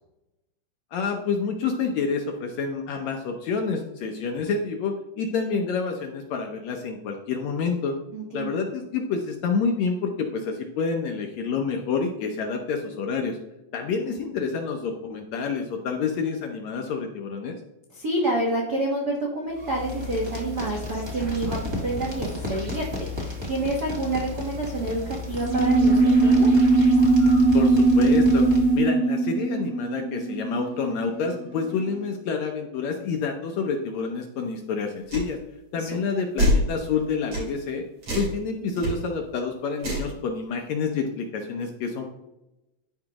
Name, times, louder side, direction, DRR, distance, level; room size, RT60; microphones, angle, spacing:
voice 1, 0.9-8.0 8.3-13.4 13.7-17.6 27.5-28.5 28.7-35.4 35.7-37.9 38.1-42.1, left 5 dB, 75° left, 3 dB, 1.7 m, -28 dB
voice 2, 8.1-8.6 14.2-14.3 17.9-26.5 35.7-36.0 38.6-38.8, right 2 dB, 65° right, -3 dB, 0.9 m, -28 dB
sound 1, 19.5-28.9, left 3 dB, 25° right, 0.6 m, -34 dB
sound 2, 25.4-31.4, right 3 dB, 85° right, 2.4 m, -19 dB
sound 3, 35.1-35.3 36.4-36.7 37.3-37.5 38.0-38.3 38.8-38.9 39.8-40.1, equal, 40° right, 3.5 m, -23 dB
11.5 x 4.9 x 2.9 m, 0.95 s
omnidirectional pair, 3.8 m